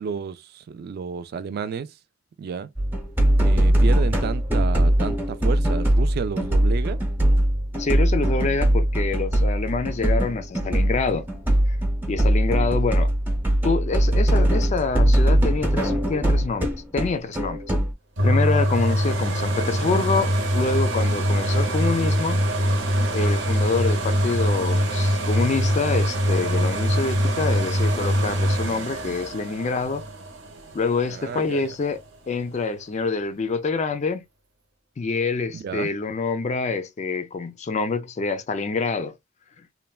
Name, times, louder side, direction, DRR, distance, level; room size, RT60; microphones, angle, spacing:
voice 1, 0.0-1.9 2.4-2.7 3.4-7.0 31.1-31.8 35.5-35.9, right 6 dB, 50° right, 0.3 m, -31 dB
sound 1, 2.8-17.9, right 1 dB, 10° right, 0.8 m, -21 dB
voice 2, 7.8-11.3 12.1-13.1 13.6-17.6 18.2-22.4 23.1-30.1 30.7-32.0 32.3-34.2 35.0-39.2, left 4 dB, 35° left, 0.3 m, -26 dB
sound 2, 18.2-31.8 32.4-32.5, equal, 70° right, 0.9 m, -23 dB
3.2 x 2.1 x 2.3 m
head